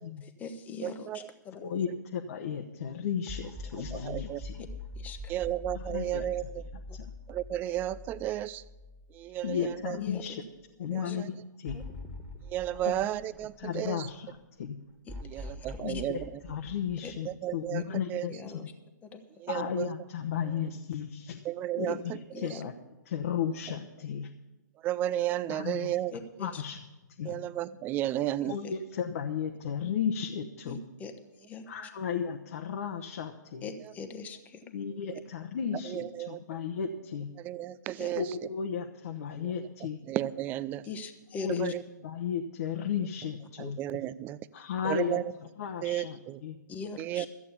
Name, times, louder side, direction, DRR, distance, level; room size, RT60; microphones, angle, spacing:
voice 1, 0.2-1.6 5.0-5.3 6.9-7.0 10.0-10.4 10.9-11.2 11.7-11.8 15.1-16.0 17.0-17.1 17.7-18.0 18.3-18.7 19.0-19.2 22.3-22.6 26.1-26.6 27.2-27.3 28.4-28.7 30.6-31.1 31.5-31.7 33.6-34.6 38.0-38.1 40.8-41.7 46.7-47.3, left 4 dB, 15° left, 8 dB, 1.0 m, -42 dB
voice 2, 0.8-1.2 3.9-4.4 5.3-6.4 7.3-8.6 9.1-9.6 9.9-10.0 10.9-11.3 12.5-14.1 15.2-16.2 17.3-17.8 18.1-18.3 19.4-19.9 21.5-22.0 22.4-22.5 24.8-26.1 27.3-28.5 35.9-36.4 37.4-38.2 40.1-40.8 41.6-41.8 43.6-44.4 44.9-45.2 45.8-46.4 47.0-47.3, right 13 dB, 20° right, 18 dB, 0.3 m, -33 dB
voice 3, 1.6-4.7 5.7-6.3 6.5-7.1 9.4-10.4 10.8-11.8 12.8-13.1 13.6-14.8 15.8-18.7 19.5-21.5 21.8-22.7 23.1-24.3 25.5-26.0 26.4-26.8 27.2-27.4 28.4-30.8 31.7-33.7 34.7-37.3 38.1-40.0 41.3-41.7 42.0-43.8 44.5-46.6, left 7 dB, 50° left, 4 dB, 0.9 m, -34 dB
sound 1, 3.3-9.6 10.0-10.1 11.7-14.1 15.1-17.8, left 2 dB, ahead, 1.9 m, -44 dB
13.5 x 8.4 x 6.9 m, 1.1 s
hypercardioid pair, 130°, 10 cm